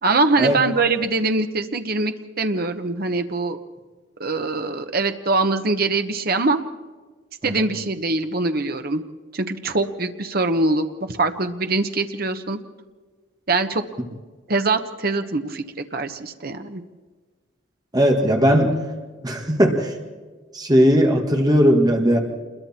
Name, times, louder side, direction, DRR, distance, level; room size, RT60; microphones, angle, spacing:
voice 1, 0.0-3.6 4.2-6.6 7.4-9.0 9.3-12.6 13.5-13.8 14.5-16.8, right 3 dB, 55° right, 7 dB, 1.2 m, -23 dB
voice 2, 17.9-18.9 19.2-19.9 20.5-22.2, equal, 20° right, 2 dB, 1.9 m, -17 dB
27.5 x 22.0 x 4.4 m, 1.4 s
head